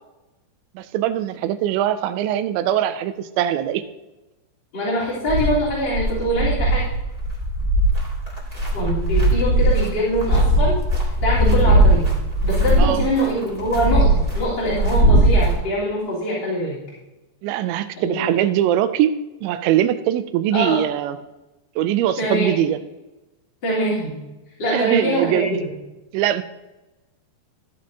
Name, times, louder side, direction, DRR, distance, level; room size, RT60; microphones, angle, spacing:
voice 1, 0.8-3.8 11.4-11.6 12.8-13.1 17.4-19.1 19.4-21.2 21.8-22.8 24.7-25.6 26.1-26.4, right 12 dB, 90° right, 12 dB, 2.9 m, -21 dB
voice 2, 4.7-6.8 8.7-10.8 11.2-12.1 12.4-14.1 14.3-16.7 18.0-18.5 20.5-20.8 22.2-22.6 23.6-24.1 24.6-25.7, equal, 30° left, -9 dB, 3.3 m, -23 dB
sound 1, 5.3-15.5, right 1 dB, 40° right, 0.5 m, -19 dB
13.5 x 10.5 x 2.7 m, 1.0 s
omnidirectional pair, 5.1 m